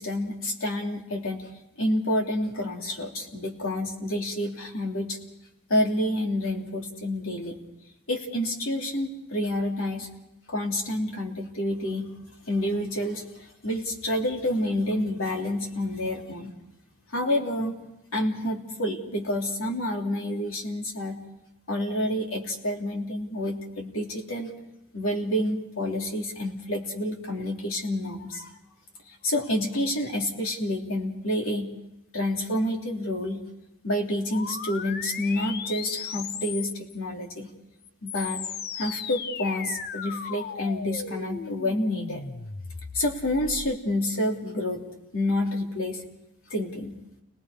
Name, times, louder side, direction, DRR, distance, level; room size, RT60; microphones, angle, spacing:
voice 1, 0.0-1.5 1.8-5.2 5.7-7.6 8.1-10.1 10.5-12.1 12.5-16.5 17.1-17.7 18.1-21.2 21.7-24.5 24.9-28.5 29.1-31.7 32.1-33.4 33.8-37.5 38.0-38.4 38.8-42.2 42.9-44.8 45.1-46.0 46.5-47.0, left 1 dB, 70° left, 1 dB, 3.2 m, -28 dB
sound 1, 34.3-37.0 37.8-43.8, left 6 dB, 45° left, 0.7 m, -36 dB
29.5 x 20.0 x 5.1 m, 0.88 s
head